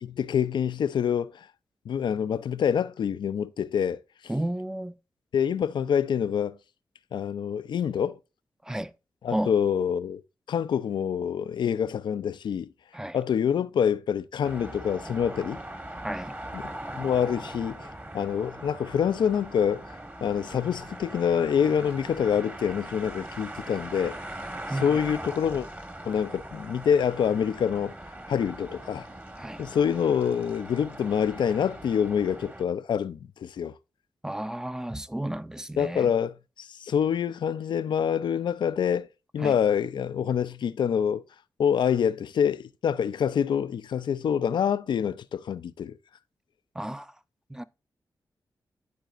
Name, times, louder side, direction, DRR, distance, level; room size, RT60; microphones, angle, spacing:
voice 1, 0.0-1.5 1.9-4.0 5.3-6.6 7.1-8.2 9.2-10.2 10.5-12.7 13.1-15.6 16.5-19.8 20.2-24.2 24.7-25.7 26.0-27.9 28.3-29.1 29.6-33.8 35.8-39.1 39.3-41.2 41.6-46.0, left 8 dB, 75° left, 0.4 m, -26 dB
voice 2, 4.3-4.9 8.6-8.9 9.3-9.5 12.9-13.2 16.0-16.3 24.7-25.0 29.4-29.6 34.2-36.1 39.4-39.6 46.7-47.1 47.5-47.6, right 1 dB, 5° right, 0.5 m, -32 dB
sound 1, 14.4-32.6, right 1 dB, 25° right, 1.4 m, -41 dB
12.0 x 4.0 x 2.5 m
cardioid pair, 45°, 8 cm